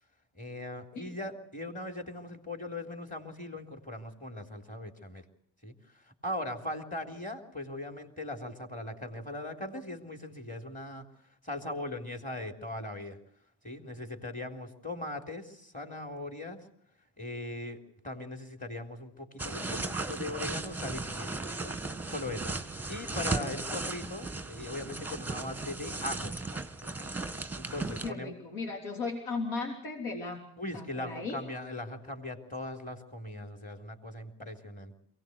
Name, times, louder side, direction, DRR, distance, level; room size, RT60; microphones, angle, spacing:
voice 1, 0.4-5.2 5.6-5.7 6.2-11.0 11.4-13.2 13.6-16.6 17.2-17.8 18.0-21.7 22.1-22.5 22.9-26.3 26.8-26.9 27.6-28.3 30.6-35.0, left 1 dB, 15° left, 4 dB, 3.7 m, -39 dB
sound 1, 19.4-28.1, right 3 dB, 5° right, 1.6 m, -36 dB
voice 2, 27.8-30.4 30.7-31.4, left 3 dB, 75° left, 2 dB, 3.6 m, -36 dB
23.0 x 18.0 x 8.2 m, 0.69 s
supercardioid pair, 70°, 49 cm